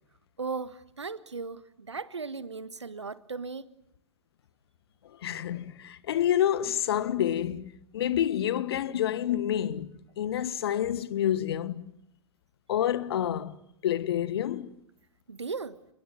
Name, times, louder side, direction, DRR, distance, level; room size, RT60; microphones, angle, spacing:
voice 1, 0.4-3.7 15.3-15.8, right 4 dB, 85° right, 1.4 m, -37 dB
voice 2, 5.2-11.8 12.7-13.6 13.8-14.7, left 10 dB, 65° left, 1.5 m, -28 dB
30.0 x 21.0 x 9.1 m
figure-of-eight pair, 100°, 14 cm